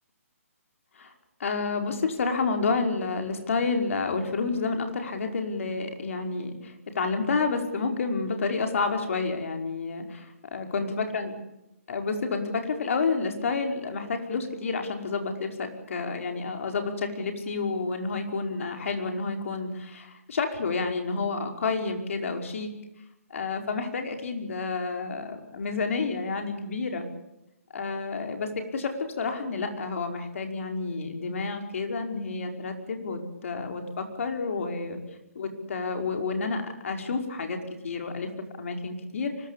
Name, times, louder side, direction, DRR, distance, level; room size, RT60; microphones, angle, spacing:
voice 1, 1.4-11.3 11.9-22.7 23.3-27.1 27.7-35.0 35.4-39.5, left 4 dB, 60° left, 5 dB, 5.4 m, -30 dB
24.5 x 21.0 x 8.5 m, 0.90 s
hypercardioid pair, 160°, 8 cm